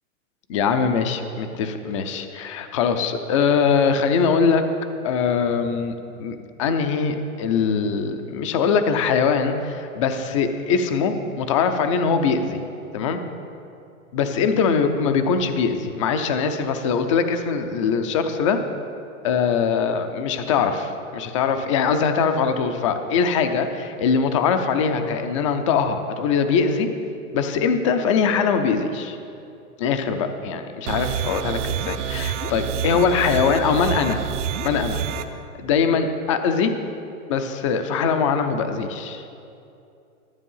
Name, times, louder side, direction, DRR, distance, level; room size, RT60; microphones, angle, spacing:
voice 1, 0.5-4.6 5.0-12.6 12.9-13.2 14.1-18.6 19.2-26.9 27.3-29.2 29.8-34.2 34.6-35.0 35.6-36.7 37.3-39.2, left 6 dB, 25° left, 7 dB, 0.5 m, -22 dB
sound 1, 30.9-35.2, right 8 dB, 55° right, 0.8 m, -28 dB
13.0 x 8.2 x 5.5 m, 2.6 s
hypercardioid pair, 155°, 42 cm